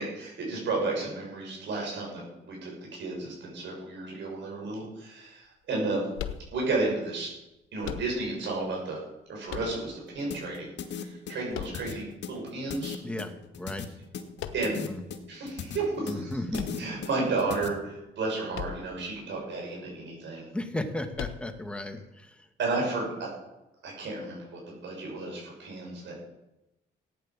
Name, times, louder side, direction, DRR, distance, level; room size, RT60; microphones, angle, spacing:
voice 1, 0.0-6.0 6.5-7.3 7.7-9.0 9.3-13.0 14.5-14.8 15.3-16.3 16.8-20.4 22.6-23.3 23.8-26.1, right 3 dB, 70° right, -2 dB, 7.2 m, -32 dB
sound 1, 6.1-6.9 7.8-8.5 9.5-10.2 11.5-12.3 14.4-14.9 16.5-17.4 18.5-19.1 19.4-19.5 21.1-21.8, left 10 dB, 90° left, 1.1 m, -39 dB
sound 2, 10.3-17.7, left 7 dB, 65° left, 1.8 m, -38 dB
voice 2, 13.0-13.9 14.7-15.0 16.1-16.9 20.5-22.5, left 1 dB, 5° left, 6 dB, 1.8 m, -35 dB
15.0 x 9.3 x 7.4 m, 0.93 s
cardioid pair, 90°, 20 cm